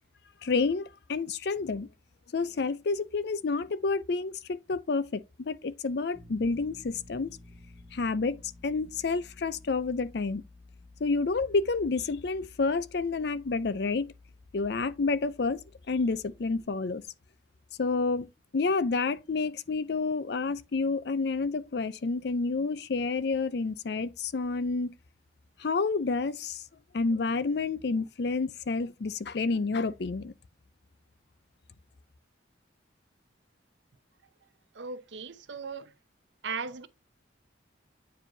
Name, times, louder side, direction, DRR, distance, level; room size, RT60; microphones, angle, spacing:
voice 1, 0.4-1.9 2.3-7.4 7.9-8.4 8.6-10.4 11.0-14.1 14.5-15.6 15.9-17.0 17.8-25.0 25.6-26.6 26.9-30.3, left 4 dB, 55° left, 0.5 m, -29 dB
sound 1, 6.1-16.6, left 2 dB, 5° right, 1.2 m, -54 dB
voice 2, 34.7-35.9 36.4-36.9, right 5 dB, 70° right, 0.7 m, -37 dB
8.9 x 4.7 x 2.7 m
head